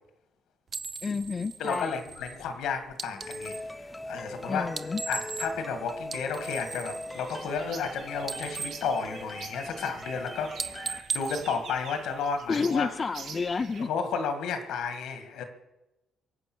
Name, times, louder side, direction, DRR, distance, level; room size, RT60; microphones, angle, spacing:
sound 1, 0.7-3.7 4.6-5.7 6.0-9.7 10.1-10.3 10.6-12.4, right 5 dB, 40° right, 0.8 m, -38 dB
voice 1, 1.0-2.0 4.5-5.0 12.5-13.9, left 4 dB, 35° left, 9 dB, 0.6 m, -30 dB
voice 2, 1.6-4.7 5.1-12.9 13.9-15.4, left 5 dB, 85° left, 7 dB, 2.0 m, -32 dB
sound 2, 3.2-11.0, left 1 dB, 10° left, 0.8 m, -41 dB
sound 3, 7.1-13.9, right 5 dB, 75° right, 1.9 m, -46 dB
23.0 x 7.9 x 6.3 m, 0.98 s
cardioid pair, 90°, 0 cm